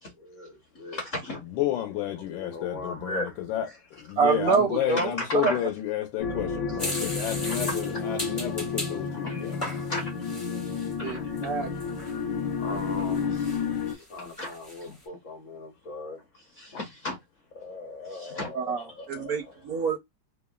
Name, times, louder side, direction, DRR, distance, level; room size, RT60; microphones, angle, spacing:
voice 1, 0.0-1.4 2.3-3.4 5.0-5.7 7.2-7.7 9.2-9.4 9.9-10.3 11.0-11.4 12.6-17.2 17.5-19.4, left 2 dB, 55° left, 0.9 m, -37 dB
voice 2, 1.5-9.6, left 12 dB, 85° left, 1.4 m, -31 dB
voice 3, 4.2-5.1 5.4-5.5 11.0-11.7 18.5-20.0, right 6 dB, 70° right, 0.9 m, -26 dB
sound 1, 6.2-14.0, left 5 dB, 70° left, 1.2 m, -31 dB
sound 2, 6.8-9.0 9.5-10.9 11.4-11.5 11.8-12.2 12.8-13.9 14.2-14.8, equal, 15° left, 0.5 m, -37 dB
3.5 x 2.0 x 2.2 m
omnidirectional pair, 2.1 m